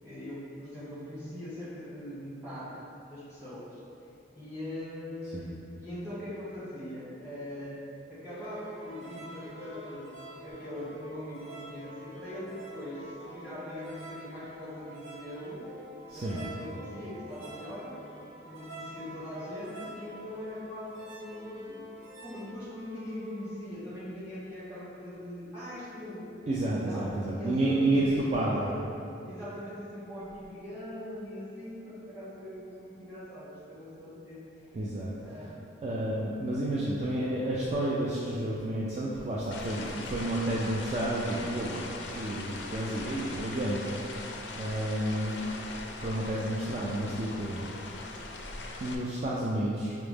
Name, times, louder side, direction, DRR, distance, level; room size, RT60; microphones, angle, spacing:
voice 1, 0.0-7.8 8.1-15.6 16.1-18.0 18.3-21.9 22.2-26.3 26.7-28.8 29.2-34.4 35.2-35.8, left 1 dB, 10° right, -12 dB, 1.4 m, -41 dB
sound 1, 8.3-23.6, right 1 dB, 65° right, 0.7 m, -47 dB
voice 2, 16.1-16.4 26.5-28.7 34.7-35.5 35.8-41.8 42.1-43.8 44.2-45.3 46.0-47.7 48.8-50.0, right 1 dB, 35° right, -6 dB, 0.3 m, -30 dB
sound 2, 39.5-48.9, left 2 dB, 65° left, 0.4 m, -40 dB
5.7 x 2.0 x 3.3 m, 2.7 s
head